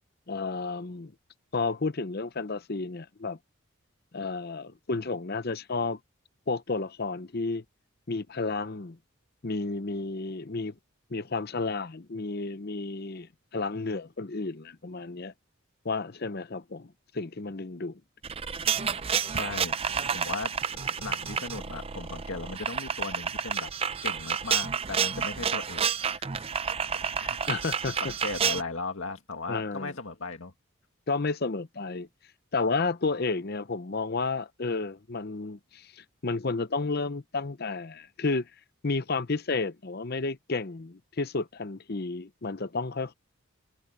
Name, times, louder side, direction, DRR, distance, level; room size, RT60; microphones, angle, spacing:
voice 1, 0.3-1.1 1.5-3.4 4.1-6.0 6.5-7.6 8.1-9.0 9.4-10.7 11.1-15.3 15.8-18.0 27.5-28.0 29.5-29.9 31.1-32.1 32.5-38.5 38.8-43.1, left 3 dB, 45° left, 0.7 m, -32 dB
sound 1, 18.2-28.6, right 7 dB, 25° right, 0.5 m, -30 dB
voice 2, 19.3-23.7 24.0-26.5 27.2-27.4 27.8-30.5, left 3 dB, 70° left, 2.0 m, -37 dB
head